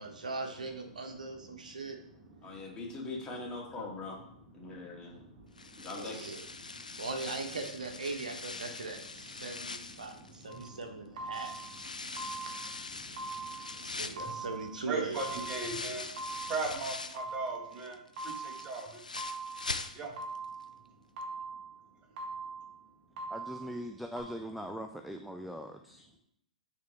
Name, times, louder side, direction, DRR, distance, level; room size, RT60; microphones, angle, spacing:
voice 1, 0.0-2.0 6.0-6.4 7.0-11.6 13.8-15.4, right 3 dB, 80° right, 5 dB, 0.9 m, -40 dB
voice 2, 1.5-1.9 2.4-2.8 4.6-5.9 6.6-7.0 9.4-10.8 11.7-14.5 14.8-18.0 18.2-19.0 19.9-20.2, right 3 dB, 25° right, 1 dB, 1.6 m, -41 dB
voice 3, 2.4-4.2 4.5-5.2 5.8-6.2, left 3 dB, 20° left, -2 dB, 2.0 m, -41 dB
sound 1, 5.6-10.8 11.3-17.3 17.7-20.4 20.6-20.7 21.2-21.3, left 3 dB, 90° left, 0.5 m, -43 dB
sound 2, 10.5-10.7 11.2-11.7 12.2-12.7 13.2-13.7 14.2-14.7 15.2-15.7 16.2-16.7 17.2-17.7 18.2-18.7 19.2-19.7 20.2-20.7 21.2-21.7 22.2-22.7 23.2-23.7 24.2-24.3, right 3 dB, 45° right, 1.7 m, -41 dB
voice 4, 23.3-26.0, equal, ahead, 4 dB, 0.4 m, -41 dB
9.2 x 3.6 x 3.3 m, 0.70 s
figure-of-eight pair, 115°, 4 cm